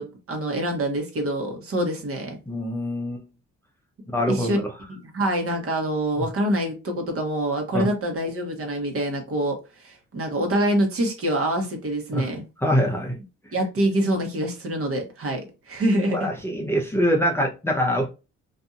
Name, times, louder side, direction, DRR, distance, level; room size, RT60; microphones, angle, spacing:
voice 1, 0.0-2.4 4.3-4.6 4.9-12.5 13.5-16.3, right 1 dB, 50° right, 1.1 m, -25 dB
voice 2, 2.5-3.2 4.1-4.7 7.7-7.9 12.1-12.3 12.6-13.2 16.0-18.1, equal, 10° left, 0.6 m, -24 dB
2.7 x 2.6 x 2.3 m
cardioid pair, 90°, 30 cm